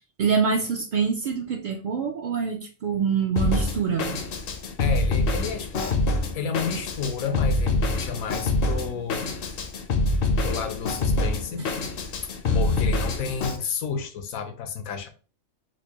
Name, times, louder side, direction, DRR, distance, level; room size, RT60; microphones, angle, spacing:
voice 1, 0.2-4.2, right 6 dB, 70° right, 0.4 m, -25 dB
Drum kit, 3.4-13.6, left 2 dB, 60° left, 0.6 m, -26 dB
voice 2, 4.8-6.0 6.3-9.5 10.4-11.7 12.2-15.1, left 6 dB, 90° left, 1.1 m, -31 dB
4.5 x 2.2 x 2.9 m
omnidirectional pair, 1.4 m